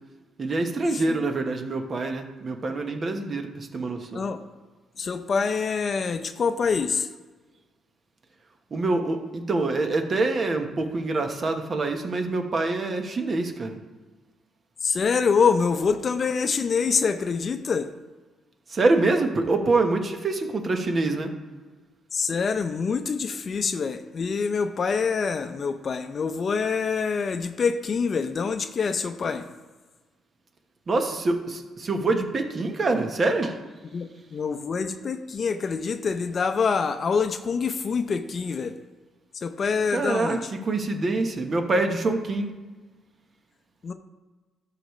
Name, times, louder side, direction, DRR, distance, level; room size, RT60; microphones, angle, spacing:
voice 1, 0.4-4.2 8.7-13.8 18.7-21.3 30.9-33.6 39.9-42.5, right 3 dB, 40° right, 5 dB, 1.1 m, -25 dB
voice 2, 5.0-7.1 14.8-17.9 22.1-29.5 33.9-38.7 39.3-40.5 43.8-43.9, left 5 dB, 45° left, 9 dB, 0.6 m, -25 dB
13.0 x 4.9 x 3.2 m, 1.3 s
cardioid pair, 90°, 0 cm